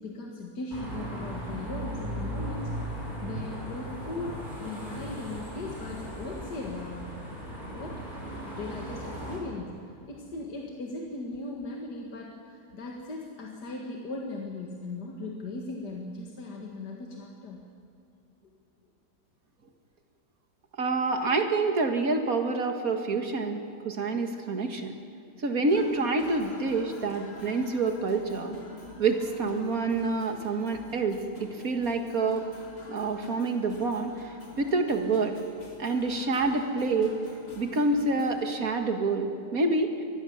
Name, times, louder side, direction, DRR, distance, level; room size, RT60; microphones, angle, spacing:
voice 1, 0.0-7.1 7.6-8.0 8.5-17.7, left 2 dB, 75° left, -1 dB, 2.5 m, -38 dB
sound 1, 0.7-9.4, equal, 30° right, 6.0 m, -37 dB
voice 2, 20.8-24.9 25.4-28.6 29.0-32.5 32.9-35.3 35.8-37.1 37.6-39.9, right 3 dB, 60° right, 5 dB, 2.3 m, -27 dB
sound 2, 25.7-38.6, left 3 dB, 40° left, 2.5 m, -46 dB
24.5 x 19.0 x 7.3 m, 2.6 s
omnidirectional pair, 1.8 m